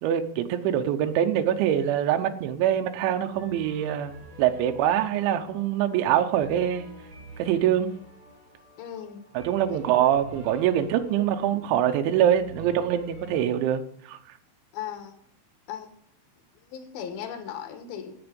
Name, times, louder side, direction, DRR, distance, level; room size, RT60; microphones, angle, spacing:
voice 1, 0.0-6.9 7.4-7.9 9.3-14.2, right 10 dB, 80° right, 3.2 m, -24 dB
sound 1, 3.0-13.5, right 1 dB, 25° right, 5.8 m, -48 dB
voice 2, 8.8-9.2 9.7-9.8 11.2-11.3 12.4-12.5 14.7-15.1 15.7-15.9 16.6-18.1, left 9 dB, 65° left, 2.9 m, -37 dB
17.0 x 6.9 x 5.2 m
omnidirectional pair, 5.4 m